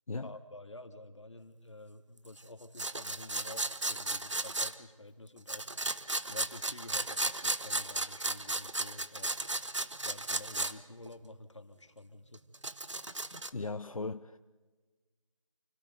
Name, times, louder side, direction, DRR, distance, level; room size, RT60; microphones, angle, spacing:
voice 1, 0.2-5.7 6.3-9.4 10.0-12.4, left 2 dB, 60° left, 2.2 m, -49 dB
sound 1, 2.8-4.8 5.5-10.7 11.1-11.2 12.3-13.5, right 2 dB, 65° right, 1.2 m, -35 dB
voice 2, 13.3-14.4, left 3 dB, 85° left, 0.8 m, -38 dB
29.0 x 17.5 x 5.3 m
figure-of-eight pair, 180°, 17 cm